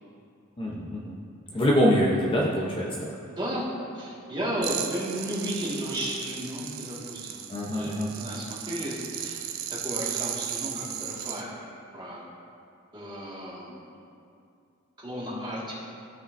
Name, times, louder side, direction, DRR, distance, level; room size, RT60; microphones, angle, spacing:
voice 1, 0.6-1.1 1.5-3.1 7.5-8.1, equal, 25° left, -3 dB, 0.7 m, -24 dB
voice 2, 3.3-3.7 3.9-11.7 11.9-12.4 12.9-13.9 15.0-15.8, equal, 20° right, -7 dB, 1.8 m, -34 dB
sound 1, 4.6-11.4, right 9 dB, 80° right, 0.6 m, -36 dB
14.5 x 5.1 x 2.6 m, 2.5 s
head